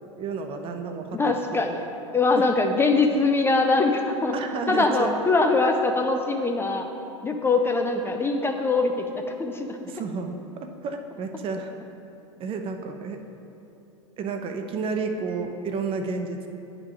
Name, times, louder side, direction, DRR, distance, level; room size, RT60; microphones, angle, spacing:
voice 1, 0.2-1.2 1.5-1.7 2.3-2.5 4.3-5.1 9.8-11.7 12.4-13.2 14.2-16.5, right 4 dB, 35° right, 6 dB, 0.6 m, -31 dB
voice 2, 1.1-1.8 2.1-4.4 4.7-6.9 7.2-8.9 9.4-9.9, left 3 dB, 15° left, 3 dB, 0.4 m, -22 dB
9.7 x 3.7 x 4.9 m, 2.8 s
figure-of-eight pair, 85°, 16 cm